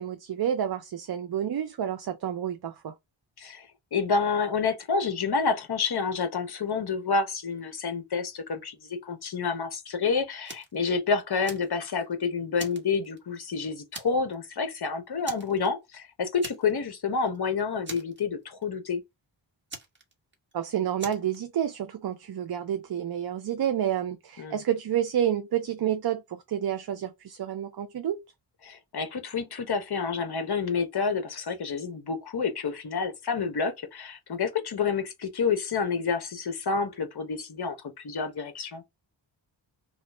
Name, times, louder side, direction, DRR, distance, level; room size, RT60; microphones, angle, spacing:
voice 1, 0.0-2.9 20.5-28.2, right 10 dB, 55° right, 0.5 m, -29 dB
voice 2, 3.4-19.0 24.4-24.6 28.6-38.8, left 5 dB, 55° left, 1.0 m, -29 dB
Fire, 10.5-10.8 11.2-12.1 12.6-13.5 13.9-14.3 14.6-14.8 15.2-16.0 16.4-17.0 17.2-17.4 17.8-18.6 19.7-20.5 21.0-21.4, right 2 dB, 25° right, 1.1 m, -42 dB
2.9 x 2.3 x 4.1 m
wide cardioid pair, 85°, 47 cm